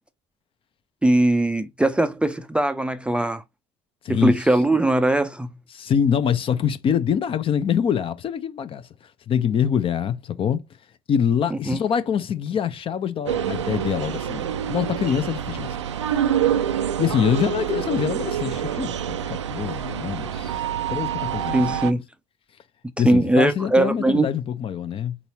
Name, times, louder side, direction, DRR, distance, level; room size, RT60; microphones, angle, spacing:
voice 1, 1.0-3.4 4.1-5.5 11.5-11.8 21.5-22.0 23.0-24.3, right 1 dB, 5° right, 0.4 m, -20 dB
voice 2, 5.7-8.9 9.3-10.6 11.1-15.8 17.0-20.6 20.9-22.0 23.0-25.2, left 8 dB, 40° left, 0.6 m, -24 dB
sound 1, 13.3-21.9, right 9 dB, 85° right, 0.4 m, -26 dB
4.1 x 3.6 x 2.9 m
figure-of-eight pair, 60°, 15 cm